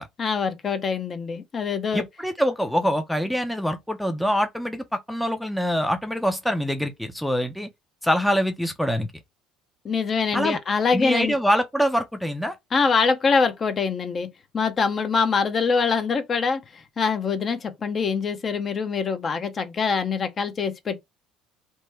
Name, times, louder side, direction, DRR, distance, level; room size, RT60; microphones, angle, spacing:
voice 1, 0.2-2.0 9.8-11.4 12.7-14.3 14.5-21.0, left 5 dB, 40° left, 0.6 m, -24 dB
voice 2, 1.9-7.7 8.0-9.1 10.3-10.6 10.9-12.6, equal, 5° left, 0.5 m, -24 dB
3.0 x 2.2 x 3.3 m
supercardioid pair, 80°, 0 cm